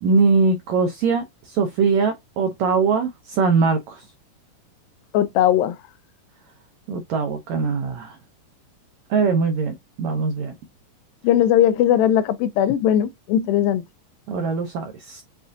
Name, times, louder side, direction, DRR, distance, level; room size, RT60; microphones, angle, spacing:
voice 1, 0.0-4.0 6.9-8.2 9.1-10.5 14.3-15.2, right 4 dB, 90° right, 1.5 m, -21 dB
voice 2, 5.1-5.8 11.2-13.8, left 11 dB, 85° left, 2.3 m, -19 dB
7.1 x 2.5 x 2.6 m
omnidirectional pair, 4.1 m